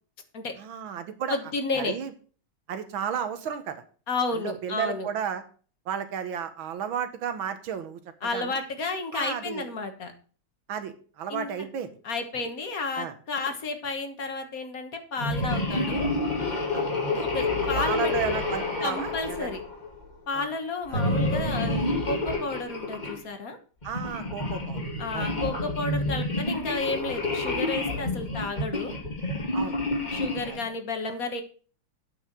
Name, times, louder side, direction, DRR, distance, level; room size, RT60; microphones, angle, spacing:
voice 1, 0.6-1.4 1.7-2.1 2.7-3.8 4.4-5.4 5.9-8.0 8.3-8.6 9.1-9.7 10.7-11.9 13.0-13.1 16.7-16.8 17.8-19.6 20.3-20.5 20.9-21.0 23.8-24.8 25.1-25.3 29.5-29.8 30.5-30.6, right 8 dB, 75° right, 10 dB, 1.8 m, -33 dB
voice 2, 1.3-2.0 4.1-5.1 8.2-10.1 11.3-11.7 12.0-16.1 17.1-18.1 18.8-19.6 20.3-23.6 25.0-28.9 30.1-31.4, left 3 dB, 45° left, 6 dB, 1.6 m, -32 dB
sound 1, 15.2-20.0 20.9-23.2 23.8-30.6, left 2 dB, 20° left, 2.4 m, -29 dB
8.5 x 6.2 x 6.1 m, 0.40 s
omnidirectional pair, 2.3 m